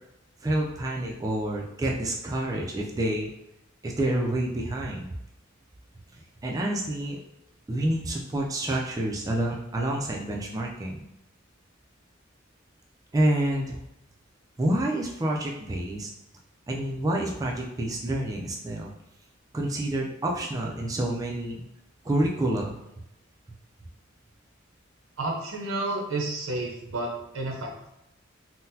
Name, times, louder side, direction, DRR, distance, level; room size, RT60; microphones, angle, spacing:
voice 1, 0.4-3.3 3.8-5.1 6.4-7.2 7.7-11.1 13.1-13.8 14.6-16.1 16.7-18.9 19.5-21.7 22.0-22.8, right 1 dB, 20° right, -1 dB, 0.3 m, -28 dB
voice 2, 25.2-27.1 27.3-27.9, right 2 dB, 85° right, 0 dB, 0.7 m, -31 dB
3.8 x 2.1 x 2.7 m, 0.86 s
head